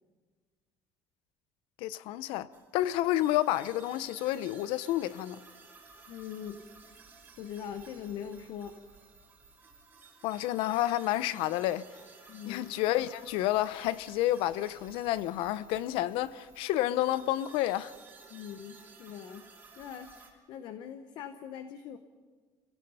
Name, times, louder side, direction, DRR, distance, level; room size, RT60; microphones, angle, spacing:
voice 1, 1.8-5.4 10.2-11.9 12.5-17.9, left 14 dB, 85° left, 0.7 m, -30 dB
sound 1, 2.5-20.3, right 4 dB, 20° right, 2.9 m, -55 dB
voice 2, 6.1-6.6 7.4-8.7 12.3-12.7 18.3-19.5 19.8-22.0, left 8 dB, 55° left, 0.9 m, -42 dB
28.0 x 17.0 x 5.6 m
cardioid pair, 175°, 9 cm